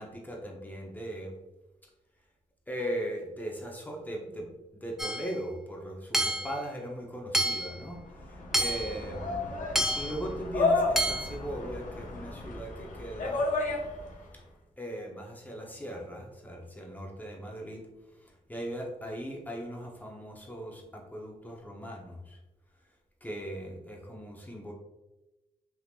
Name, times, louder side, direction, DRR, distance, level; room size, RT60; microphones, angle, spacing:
voice 1, 0.0-1.3 2.7-4.5 4.7-9.5 10.0-13.5 14.8-17.9 18.2-22.4 23.2-24.7, equal, 15° left, 0 dB, 0.8 m, -39 dB
Hammer / Chink clink, 5.0-5.3 6.1-6.6 7.3-7.8 8.5-9.0 9.8-10.2 11.0-11.3, right 1 dB, 5° right, 0.4 m, -28 dB
sound 1, 7.9-14.3, left 3 dB, 70° left, 0.7 m, -32 dB
3.5 x 2.8 x 2.4 m, 1.0 s
cardioid pair, 60°, 13 cm